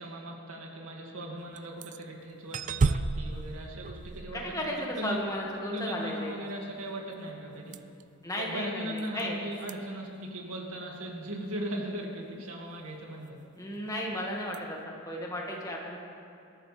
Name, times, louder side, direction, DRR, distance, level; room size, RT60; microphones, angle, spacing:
voice 1, 0.0-4.7 5.0-5.2 5.7-7.8 8.3-13.4, right 1 dB, 80° right, -1 dB, 2.3 m, -38 dB
sound 1, 1.6-2.0 2.5-4.9 7.7-8.0 9.0-9.2 9.6-9.7 14.5-14.6, right 4 dB, 35° right, 0.4 m, -31 dB
voice 2, 4.3-6.3 8.2-9.4 13.6-16.0, left 1 dB, 15° left, -2 dB, 1.9 m, -34 dB
21.0 x 13.5 x 3.4 m, 2.7 s
head